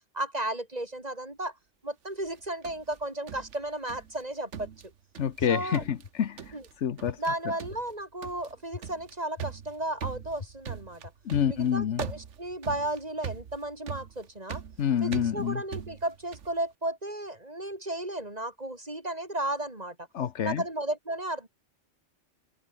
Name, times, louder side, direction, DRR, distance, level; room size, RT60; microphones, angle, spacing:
voice 1, 0.1-1.5 1.8-4.7 5.5-5.8 6.5-6.6 7.2-11.0 11.5-14.6 15.0-20.0 20.4-21.5, right 1 dB, 35° right, 4.2 m, -34 dB
sound 1, 2.3-4.2 4.5-5.5 5.7-6.1 6.4-6.7 7.0-7.3 7.6-16.6, right 7 dB, 90° right, 1.5 m, -41 dB
voice 2, 5.2-7.2 11.2-12.0 14.8-15.6 20.1-20.6, left 9 dB, 75° left, 1.2 m, -28 dB
sound 2, 5.4-5.5 6.0-6.1 7.1-7.2 7.7-7.8 8.7-8.8 9.4-9.5 10.4-10.5 11.0-11.1 12.0-12.1 12.7-12.8, left 5 dB, 45° left, 1.2 m, -40 dB
omnidirectional pair, 1.2 m